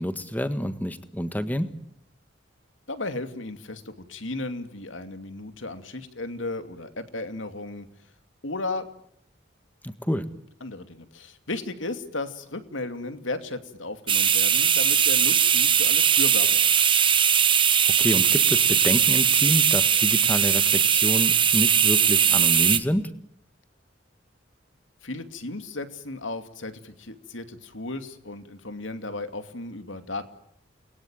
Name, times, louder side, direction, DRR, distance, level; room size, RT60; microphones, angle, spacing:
voice 1, 0.0-1.7 9.8-10.2 18.0-23.1, equal, 10° left, 11 dB, 1.5 m, -28 dB
voice 2, 2.9-7.9 8.4-8.9 10.6-16.9 25.0-30.3, left 2 dB, 85° left, 9 dB, 2.6 m, -35 dB
sound 1, 14.1-22.8, right 8 dB, 25° right, 1.1 m, -20 dB
29.5 x 21.5 x 9.1 m, 0.70 s
head